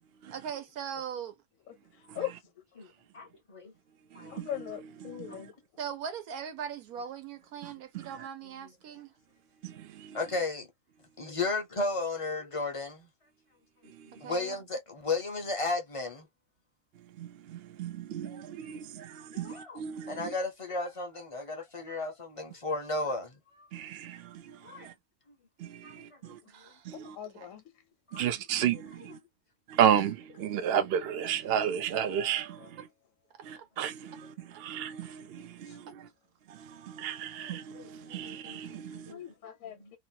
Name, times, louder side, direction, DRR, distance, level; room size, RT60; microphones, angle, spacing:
voice 1, 0.3-1.4 5.8-9.1 14.2-14.6 26.5-26.9 27.4-27.5 33.6-33.7, right 7 dB, 85° right, 1.3 m, -40 dB
voice 2, 3.1-3.7 4.1-4.4 5.3-5.5 8.4-8.7 10.1-10.7 11.2-13.1 13.8-16.3 19.3-23.7 24.6-24.9 25.8-26.2 26.9-27.1 28.1-28.3 28.7-29.1 32.0-32.1 34.1-34.2 37.4-39.2 39.6-39.9, left 3 dB, 35° left, 0.5 m, -35 dB
voice 3, 4.3-5.5 26.9-27.6 32.6-32.7 34.1-34.2 35.7-35.8 39.1-40.0, left 11 dB, 70° left, 1.0 m, -40 dB
voice 4, 17.2-20.2 23.7-24.2 24.8-24.9 25.6-26.4 26.9-27.1 28.1-29.2 29.7-32.6 33.5-34.3 34.6-35.8 36.8-39.1, right 9 dB, 65° right, 0.6 m, -32 dB
2.9 x 2.3 x 2.7 m
omnidirectional pair, 1.5 m